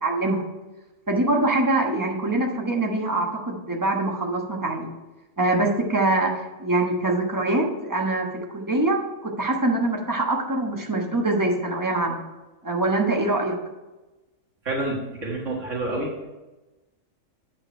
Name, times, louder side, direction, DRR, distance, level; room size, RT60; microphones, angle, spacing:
voice 1, 0.0-0.4 1.1-4.9 5.4-6.3 6.6-12.2 12.6-13.6, right 2 dB, 15° right, 1 dB, 1.2 m, -24 dB
voice 2, 14.7-16.1, right 2 dB, 70° right, -2 dB, 1.9 m, -28 dB
8.8 x 5.2 x 5.5 m, 1.1 s
omnidirectional pair, 1.3 m